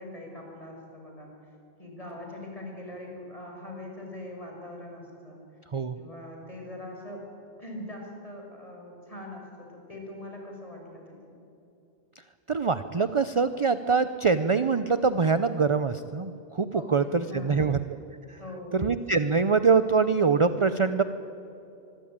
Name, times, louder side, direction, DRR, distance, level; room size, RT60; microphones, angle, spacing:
voice 1, 0.0-1.3 1.8-5.4 6.0-7.2 7.6-11.4 16.7-17.8 18.4-18.9, left 1 dB, 30° left, 0 dB, 6.1 m, -42 dB
voice 2, 12.5-17.8 18.7-21.0, right 5 dB, 35° right, 11 dB, 0.7 m, -24 dB
25.5 x 21.5 x 8.9 m, 2.8 s
omnidirectional pair, 1.1 m